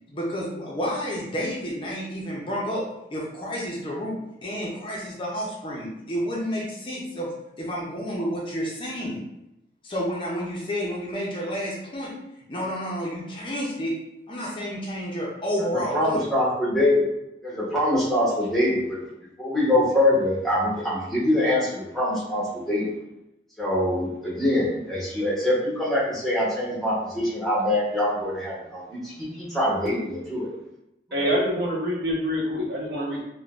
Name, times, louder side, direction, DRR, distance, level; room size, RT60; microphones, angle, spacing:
voice 1, 0.1-2.8 3.1-7.3 7.6-9.2 9.8-12.1 12.5-13.9 14.3-16.2, equal, 30° left, -4 dB, 0.5 m, -30 dB
voice 2, 15.7-17.0 17.4-19.0 19.4-22.9 23.6-30.5 31.1-31.3, left 1 dB, ahead, -7 dB, 0.9 m, -24 dB
voice 3, 31.1-33.2, equal, 55° right, -5 dB, 0.9 m, -26 dB
3.7 x 2.1 x 2.4 m, 0.87 s
head